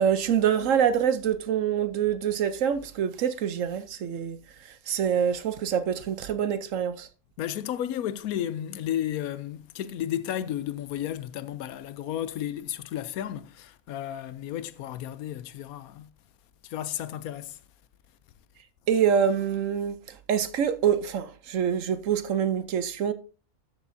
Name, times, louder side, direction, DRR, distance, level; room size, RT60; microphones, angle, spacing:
voice 1, 0.0-4.4 4.9-7.1 18.9-23.1, right 8 dB, 65° right, 1.0 m, -25 dB
voice 2, 7.4-16.1 16.6-17.6, left 11 dB, 80° left, 1.1 m, -33 dB
12.5 x 6.9 x 2.6 m
omnidirectional pair, 1.5 m